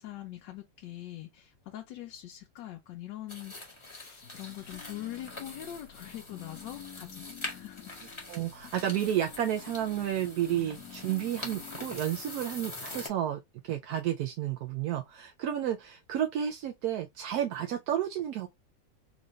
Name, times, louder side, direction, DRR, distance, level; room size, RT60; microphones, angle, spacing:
voice 1, 0.0-7.9, left 13 dB, 75° left, 1.3 m, -43 dB
sound 1, 3.3-13.1, left 2 dB, 20° left, 0.9 m, -44 dB
sound 2, 4.2-12.9, left 10 dB, 60° left, 1.1 m, -51 dB
voice 2, 8.3-18.5, right 11 dB, 70° right, 0.9 m, -31 dB
3.8 x 2.5 x 3.1 m
omnidirectional pair, 2.0 m